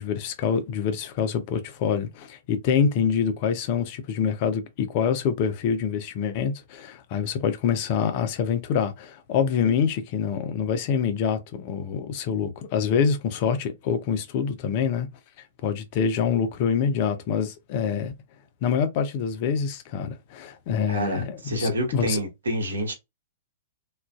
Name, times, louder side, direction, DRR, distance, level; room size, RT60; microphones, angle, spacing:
voice 1, 0.0-15.1 15.6-18.1 18.6-22.2, left 7 dB, 45° left, 0.5 m, -26 dB
voice 2, 20.9-22.9, right 1 dB, 75° right, 0.9 m, -28 dB
2.4 x 2.2 x 2.3 m
figure-of-eight pair, 105°, 0 cm